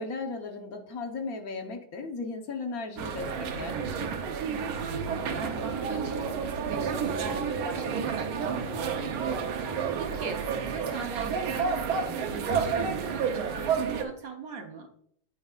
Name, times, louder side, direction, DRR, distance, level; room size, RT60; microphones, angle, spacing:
voice 1, 0.0-3.8, left 3 dB, 50° left, 4 dB, 1.3 m, -36 dB
sound 1, 3.0-14.0, right 6 dB, 90° right, 1.7 m, -30 dB
voice 2, 4.5-14.9, right 4 dB, 60° right, 4 dB, 1.0 m, -41 dB
9.0 x 9.0 x 2.4 m, 0.67 s
omnidirectional pair, 2.2 m